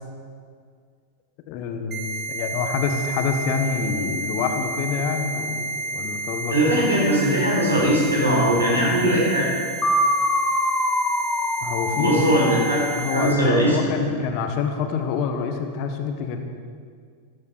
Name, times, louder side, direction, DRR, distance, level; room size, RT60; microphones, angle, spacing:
voice 1, 1.5-6.8 8.5-9.1 11.6-12.2 13.0-16.4, left 6 dB, 45° left, 6 dB, 1.4 m, -27 dB
sound 1, 1.9-13.3, right 2 dB, 30° right, 1.8 m, -31 dB
voice 2, 6.5-9.5 11.9-13.8, right 1 dB, 80° right, -4 dB, 4.6 m, -20 dB
sound 2, 9.8-13.7, left 1 dB, 15° left, 1.2 m, -24 dB
14.0 x 12.5 x 5.0 m, 2.1 s
figure-of-eight pair, 90°, 0 cm